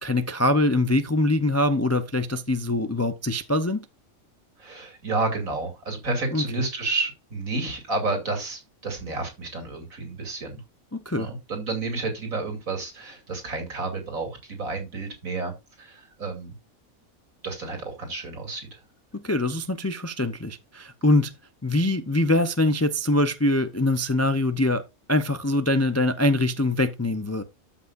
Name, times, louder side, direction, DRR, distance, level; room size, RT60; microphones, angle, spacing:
voice 1, 0.0-3.8 6.3-6.6 10.9-11.3 19.1-21.3 21.6-24.8 25.1-27.4, left 1 dB, 25° left, 0.3 m, -23 dB
voice 2, 4.6-10.6 11.1-16.5 17.4-18.8, right 3 dB, 70° right, 3.0 m, -31 dB
13.0 x 5.7 x 2.5 m
omnidirectional pair, 1.5 m